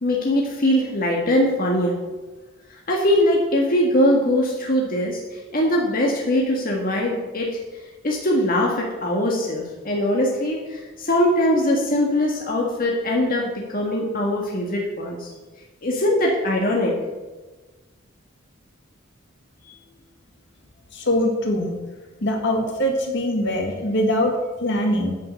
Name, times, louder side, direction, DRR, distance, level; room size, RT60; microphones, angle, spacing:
voice 1, 0.0-2.0 2.9-7.6 8.0-15.3 15.8-17.0, left 1 dB, 45° left, -1 dB, 1.7 m, -21 dB
voice 2, 20.9-21.7 22.2-25.1, left 1 dB, 60° left, 2 dB, 2.0 m, -22 dB
9.7 x 7.7 x 6.5 m, 1.2 s
head